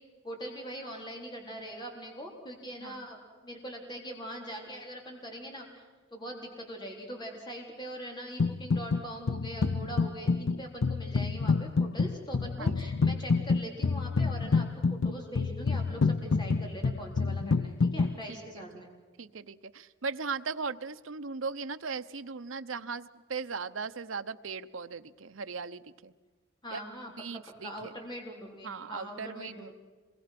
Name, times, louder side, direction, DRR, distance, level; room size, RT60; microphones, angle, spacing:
voice 1, 0.2-5.9 6.1-18.9 26.6-27.1 27.6-29.7, equal, 20° left, 0 dB, 3.9 m, -42 dB
sound 1, 8.4-9.0 9.3-18.1, left 4 dB, 75° left, 0.6 m, -28 dB
voice 2, 19.2-26.1 26.7-26.8 27.2-27.9 28.6-29.7, right 5 dB, 75° right, 10 dB, 0.9 m, -38 dB
27.0 x 22.5 x 6.0 m, 1.4 s
head